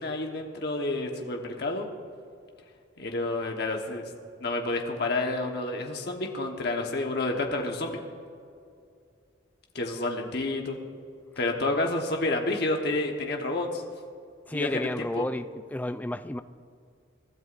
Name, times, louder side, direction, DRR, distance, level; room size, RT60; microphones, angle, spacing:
voice 1, 0.0-1.9 3.0-4.1 4.4-8.0 9.7-10.8 11.4-13.8 14.5-15.3, left 2 dB, 55° left, 2 dB, 1.2 m, -29 dB
voice 2, 14.5-16.4, left 1 dB, 10° left, 10 dB, 0.3 m, -31 dB
23.5 x 13.0 x 2.5 m, 2.4 s
head